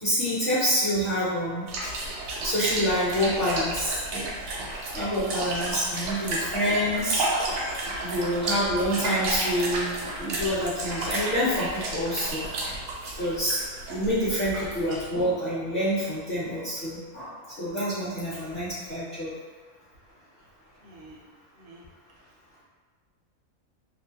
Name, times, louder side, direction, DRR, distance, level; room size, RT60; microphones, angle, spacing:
voice 1, 0.0-1.9 2.4-4.3 4.9-7.3 8.0-12.5 13.2-13.6 13.9-17.3 17.6-19.3, equal, 50° left, -10 dB, 0.8 m, -27 dB
sound 1, 1.7-15.2, right 2 dB, 80° right, 1.0 m, -32 dB
voice 2, 7.6-8.1 20.8-21.2 21.6-21.8, right 2 dB, 60° right, -4 dB, 0.6 m, -49 dB
2.5 x 2.1 x 2.7 m, 1.5 s
omnidirectional pair, 1.4 m